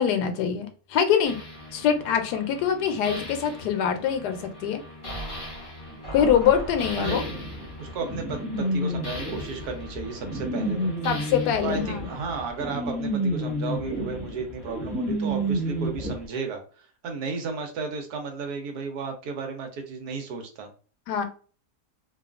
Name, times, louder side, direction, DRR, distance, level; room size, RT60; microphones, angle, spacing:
voice 1, 0.0-1.4 1.7-4.8 6.1-7.2 11.0-12.1 21.1-21.3, left 8 dB, 80° left, 7 dB, 1.1 m, -24 dB
sound 1, 1.2-12.5, equal, 40° left, 0.4 m, -40 dB
sound 2, 7.0-16.1, right 1 dB, ahead, 0.7 m, -30 dB
voice 2, 7.8-10.9 11.6-20.7, right 4 dB, 75° right, 4 dB, 1.2 m, -34 dB
2.8 x 2.3 x 2.4 m, 0.39 s
omnidirectional pair, 1.7 m